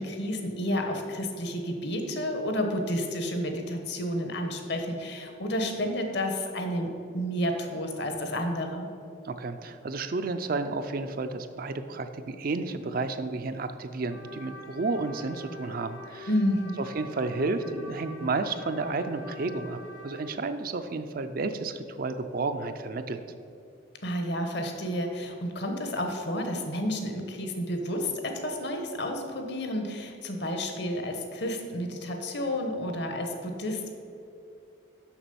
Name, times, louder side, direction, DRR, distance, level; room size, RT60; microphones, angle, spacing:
voice 1, 0.0-8.9 16.3-16.8 24.0-33.9, equal, 55° left, 4 dB, 1.1 m, -31 dB
voice 2, 9.2-16.3 16.9-19.8 20.0-23.2, right 3 dB, 45° right, 9 dB, 0.4 m, -31 dB
Trumpet, 14.1-20.3, equal, 80° left, 1.2 m, -45 dB
7.2 x 6.0 x 6.9 m, 2.6 s
head